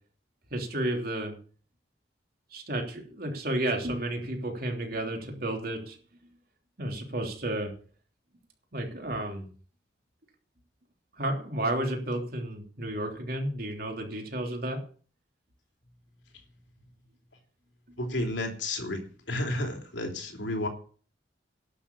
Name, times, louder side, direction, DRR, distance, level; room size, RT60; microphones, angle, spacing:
voice 1, 0.5-1.4 2.5-6.0 6.8-7.7 8.7-9.5 11.2-14.8, right 1 dB, 55° right, 2 dB, 3.3 m, -32 dB
voice 2, 18.0-20.7, left 1 dB, 85° left, 4 dB, 3.2 m, -32 dB
11.5 x 7.2 x 8.5 m, 0.42 s
head